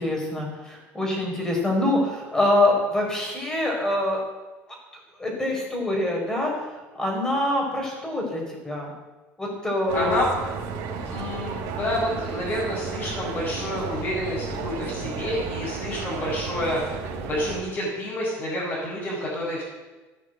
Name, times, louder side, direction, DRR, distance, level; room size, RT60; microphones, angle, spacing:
voice 1, 0.0-4.2 5.2-6.5 6.9-8.9 9.4-10.2, left 1 dB, 10° left, 0 dB, 4.6 m, -25 dB
voice 2, 9.9-10.3 11.0-19.6, left 1 dB, 35° left, -8 dB, 5.9 m, -29 dB
sound 1, 9.9-17.6, right 5 dB, 85° right, 3.0 m, -33 dB
14.5 x 9.7 x 7.9 m, 1.2 s
cardioid pair, 155°, 5 cm